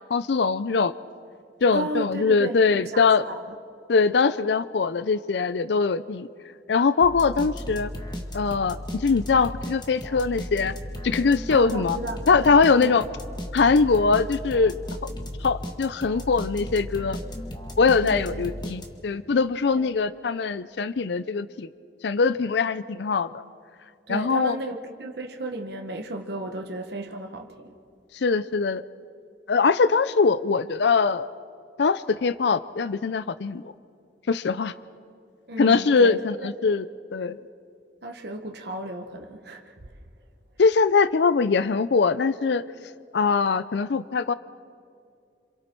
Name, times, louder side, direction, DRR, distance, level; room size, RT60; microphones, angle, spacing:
voice 1, 0.1-0.9 1.6-3.2 3.9-6.3 6.7-7.9 8.3-10.8 11.0-12.0 12.3-13.0 13.5-14.8 15.0-15.1 15.4-17.2 17.8-21.7 22.0-23.3 24.1-24.6 28.1-28.8 29.5-31.3 31.8-33.7 34.3-34.7 35.6-36.8 37.1-37.4 40.6-42.6 43.1-44.3, left 4 dB, 65° left, 15 dB, 0.5 m, -22 dB
voice 2, 1.7-3.5 11.5-13.0 18.0-18.5 19.7-19.9 24.1-27.7 35.5-36.5 38.0-39.7, right 2 dB, 60° right, 3 dB, 1.2 m, -34 dB
sound 1, 7.0-19.2, equal, 25° left, 1.6 m, -36 dB
28.0 x 26.5 x 4.5 m, 2.4 s
head